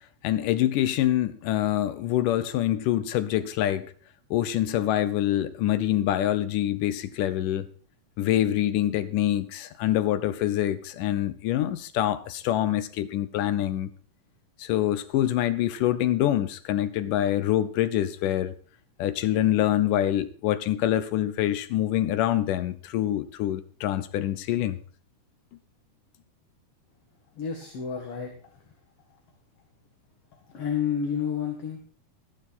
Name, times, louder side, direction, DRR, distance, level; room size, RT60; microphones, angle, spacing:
voice 1, 0.2-3.9 4.3-7.7 8.2-13.9 14.6-18.5 19.0-24.8, left 12 dB, 80° left, 14 dB, 2.4 m, -25 dB
voice 2, 27.3-28.3 30.3-31.8, left 7 dB, 50° left, 2 dB, 2.7 m, -30 dB
14.5 x 11.5 x 4.2 m, 0.41 s
omnidirectional pair, 3.8 m